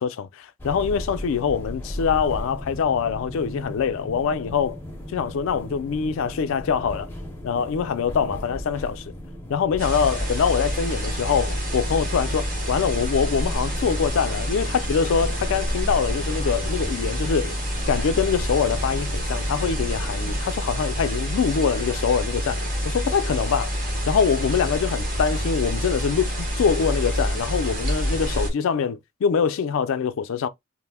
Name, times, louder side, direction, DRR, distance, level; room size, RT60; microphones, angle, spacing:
voice 1, 0.0-4.8 5.1-7.1 7.4-9.1 9.5-17.6 17.9-22.7 22.9-23.7 24.1-30.5, left 6 dB, 65° left, 0.3 m, -24 dB
sound 1, 0.6-20.4, left 1 dB, 10° left, 0.5 m, -38 dB
sound 2, 9.8-28.5, equal, 40° right, 0.8 m, -27 dB
2.6 x 2.0 x 3.3 m
head